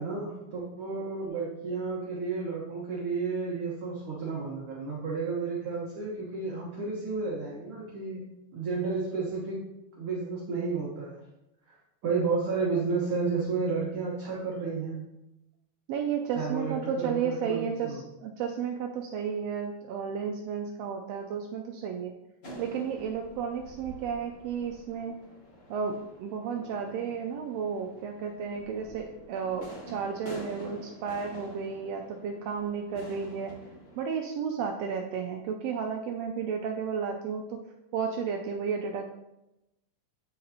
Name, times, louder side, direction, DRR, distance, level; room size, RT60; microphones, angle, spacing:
voice 1, 0.0-8.2 8.5-9.6 10.0-11.2 12.0-15.0 16.4-18.0, right 4 dB, 55° right, -5 dB, 1.8 m, -32 dB
voice 2, 15.9-22.1 22.6-25.2 25.7-33.5 34.0-37.6 37.9-39.0, right 6 dB, 85° right, 2 dB, 1.4 m, -33 dB
sound 1, 22.4-34.1, equal, 85° left, 0.5 m, -47 dB
8.5 x 6.5 x 2.8 m, 0.94 s
omnidirectional pair, 3.4 m